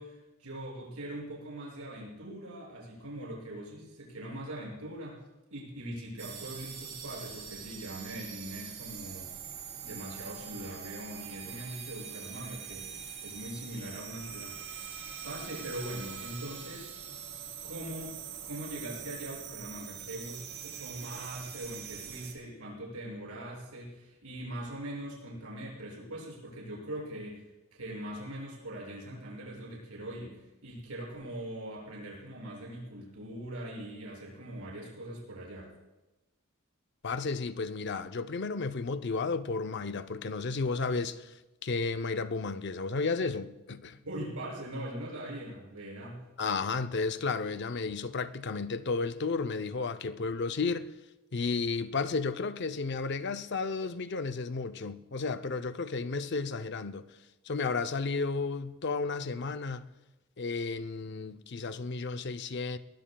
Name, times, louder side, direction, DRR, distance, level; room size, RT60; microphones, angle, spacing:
voice 1, 0.0-5.2 5.5-9.3 9.8-14.6 15.2-16.9 17.6-18.1 18.4-27.4 27.7-35.7 44.0-46.2, right 1 dB, 90° right, 6.4 m, -41 dB
sound 1, 6.2-22.3, right 8 dB, 55° right, 2.7 m, -43 dB
voice 2, 37.0-44.0 46.4-50.9 51.3-57.0 57.4-59.9 60.4-62.8, left 4 dB, 50° left, 0.6 m, -33 dB
22.5 x 19.5 x 2.3 m
head